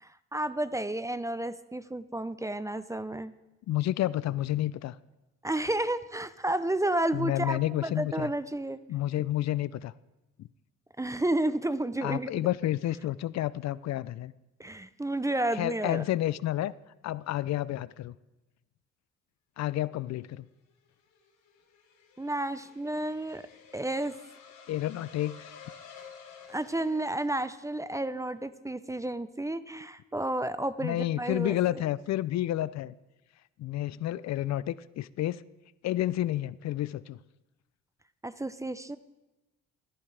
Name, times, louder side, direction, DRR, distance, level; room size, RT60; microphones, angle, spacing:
voice 1, 0.0-3.3 5.4-8.8 11.0-12.5 14.6-16.0 22.2-23.5 23.7-24.2 26.5-31.6 38.2-39.0, right 1 dB, 10° right, 14 dB, 0.4 m, -31 dB
voice 2, 3.7-5.0 7.1-8.3 8.9-9.9 12.0-14.3 15.5-16.7 17.0-18.1 19.6-20.5 24.7-25.5 30.8-32.9 33.6-35.4 35.8-37.2, left 14 dB, 60° left, 18 dB, 0.4 m, -30 dB
sound 1, 20.7-27.8, left 6 dB, 80° left, 3.7 m, -52 dB
14.5 x 13.5 x 3.3 m, 1.0 s
cardioid pair, 90°, 30 cm